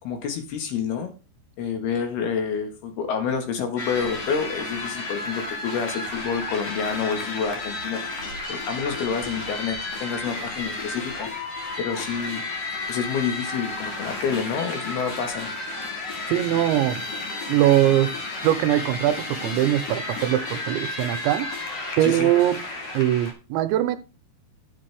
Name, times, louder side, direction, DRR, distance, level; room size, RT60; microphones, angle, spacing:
voice 1, 0.0-1.1 1.6-11.3 11.8-12.4 12.9-15.5 22.0-22.3, left 6 dB, 65° left, 3.2 m, -28 dB
sound 1, 3.8-23.3, left 2 dB, 45° left, 2.3 m, -32 dB
voice 2, 16.3-17.0 17.5-18.2 18.4-21.5 22.0-22.6 22.9-24.0, right 13 dB, 85° right, 3.0 m, -21 dB
11.5 x 7.4 x 3.4 m
omnidirectional pair, 5.4 m